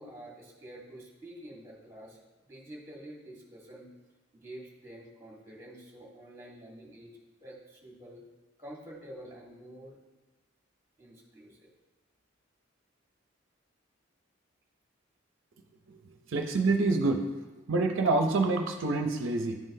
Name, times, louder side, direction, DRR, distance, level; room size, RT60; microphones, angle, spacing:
voice 1, 0.0-3.9 4.3-8.2 8.6-10.0 11.0-11.7, right 1 dB, 15° right, -3 dB, 1.5 m, -48 dB
voice 2, 15.9-17.3 17.7-19.6, right 3 dB, 75° right, 4 dB, 0.5 m, -27 dB
11.0 x 3.8 x 2.7 m, 1.2 s
head